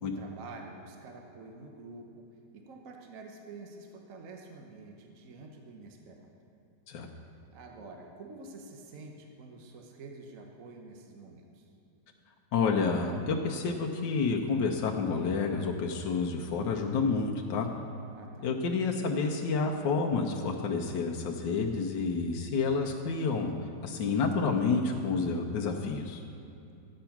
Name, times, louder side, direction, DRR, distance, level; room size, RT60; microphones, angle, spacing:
voice 1, 0.0-2.2 2.5-6.3 7.5-11.7 18.1-18.5, right 3 dB, 55° right, 2 dB, 1.3 m, -48 dB
voice 2, 12.5-17.7 18.4-23.5 23.8-26.2, left 4 dB, 90° left, 0 dB, 1.5 m, -29 dB
13.5 x 9.0 x 5.8 m, 2.6 s
omnidirectional pair, 1.9 m